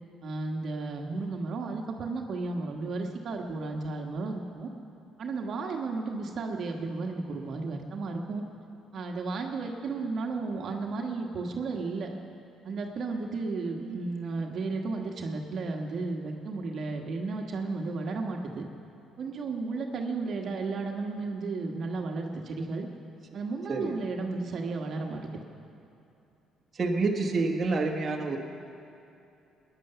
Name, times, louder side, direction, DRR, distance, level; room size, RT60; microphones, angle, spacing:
voice 1, 0.2-4.7 5.2-8.4 8.9-12.1 12.6-18.6 19.2-22.9 23.3-25.3, right 3 dB, 50° right, 2 dB, 1.4 m, -33 dB
voice 2, 26.7-28.4, right 3 dB, 30° right, 0 dB, 1.4 m, -28 dB
20.0 x 10.5 x 6.8 m, 2.8 s
cardioid pair, 125°, 0 cm